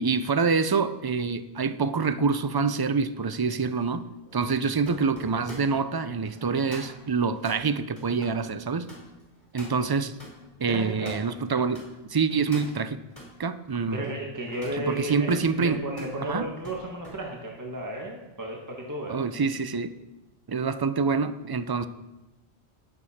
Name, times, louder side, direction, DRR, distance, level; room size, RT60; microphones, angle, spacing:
voice 1, 0.0-4.0 4.3-8.9 9.5-10.2 10.6-13.0 13.4-14.1 14.9-15.8 16.3-16.5 19.1-19.9 20.5-21.9, right 5 dB, 40° right, 12 dB, 0.3 m, -26 dB
sound 1, 1.3-11.9 12.3-13.3 13.8-17.2 17.5-17.9, equal, 20° left, 4.0 m, -48 dB
voice 2, 10.7-11.2 13.9-19.2, right 1 dB, 15° right, -1 dB, 1.5 m, -33 dB
18.5 x 6.8 x 4.3 m, 1.0 s
omnidirectional pair, 1.1 m